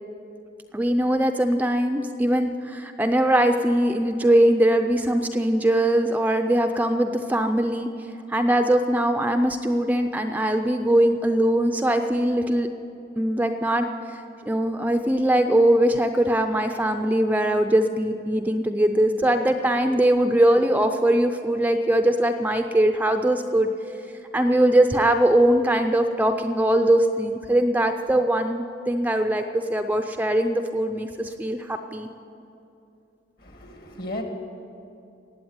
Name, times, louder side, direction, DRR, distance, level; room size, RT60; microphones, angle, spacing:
voice 1, 0.7-7.9 8.3-12.7 13.2-14.2 14.5-23.7 24.3-32.1, right 1 dB, 10° right, 7 dB, 0.5 m, -21 dB
voice 2, 33.4-34.2, left 1 dB, 55° left, 3 dB, 2.0 m, -35 dB
16.0 x 8.8 x 9.5 m, 2.7 s
head